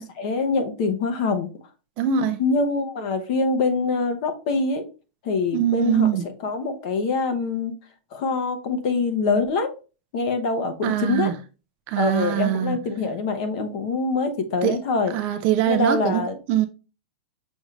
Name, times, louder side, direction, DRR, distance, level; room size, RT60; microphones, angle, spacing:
voice 1, 0.2-1.5 2.4-4.8 5.2-6.1 6.4-7.7 8.1-9.8 10.1-11.3 12.0-15.1 15.7-16.4, left 4 dB, 40° left, 0.8 m, -24 dB
voice 2, 2.0-2.4 5.5-6.2 10.8-11.4 11.9-12.8 14.6-14.8 15.1-16.2 16.5-16.7, right 10 dB, 30° right, 0.3 m, -22 dB
6.1 x 2.5 x 3.1 m
supercardioid pair, 170°, 6 cm